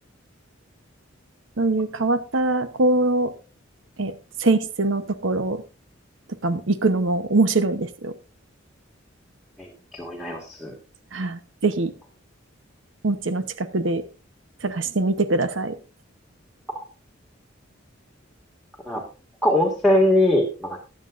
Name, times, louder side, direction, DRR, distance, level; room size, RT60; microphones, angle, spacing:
voice 1, 1.6-3.3 4.0-4.1 4.4-5.6 6.4-8.1 11.1-11.9 13.0-14.0 14.6-15.8, right 2 dB, 75° right, 11 dB, 0.9 m, -23 dB
voice 2, 9.6-10.7 18.9-19.0 19.4-20.8, left 1 dB, ahead, -1 dB, 1.9 m, -21 dB
20.0 x 7.5 x 2.5 m, 0.35 s
head